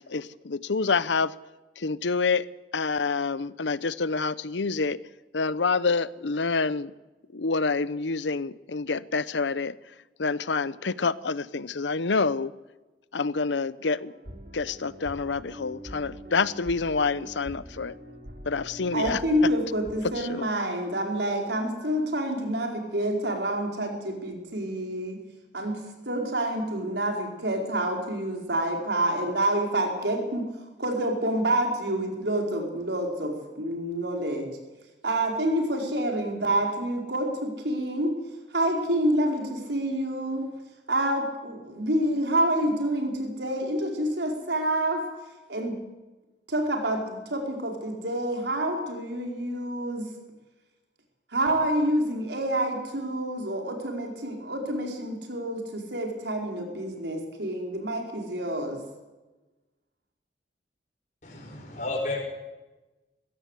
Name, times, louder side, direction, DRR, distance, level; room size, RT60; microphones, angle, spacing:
voice 1, 0.0-1.3 1.8-2.5 2.7-5.0 5.3-6.9 7.3-9.7 10.2-12.5 13.1-14.1 14.5-17.9 18.5-19.2 20.1-20.5, left 4 dB, 85° left, 18 dB, 0.8 m, -27 dB
sound 1, 14.0-20.2, equal, 55° right, 5.5 m, -44 dB
voice 2, 18.9-25.2 25.5-30.5 30.8-34.5 35.0-38.2 38.5-40.5 40.9-45.0 45.5-45.8 46.5-50.1 51.3-58.8, right 1 dB, 75° right, 2 dB, 4.8 m, -28 dB
voice 3, 61.2-62.3, left 2 dB, 40° left, 1 dB, 5.3 m, -32 dB
21.5 x 16.5 x 8.3 m, 1.1 s
head